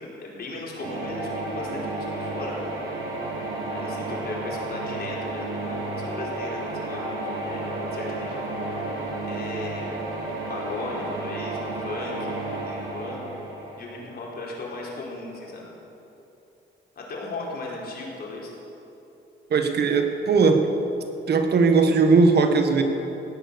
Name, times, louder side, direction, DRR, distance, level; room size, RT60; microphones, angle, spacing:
voice 1, 0.2-2.7 3.7-7.0 7.3-9.9 10.5-13.3 13.8-15.7 17.0-18.5, left 2 dB, 50° left, -3 dB, 4.4 m, -36 dB
sound 1, 0.8-14.6, right 2 dB, 85° right, 3.7 m, -32 dB
voice 2, 19.5-20.6 21.3-22.8, right 4 dB, 55° right, 6 dB, 1.5 m, -19 dB
16.5 x 10.0 x 6.9 m, 2.9 s
cardioid pair, 90°, 20 cm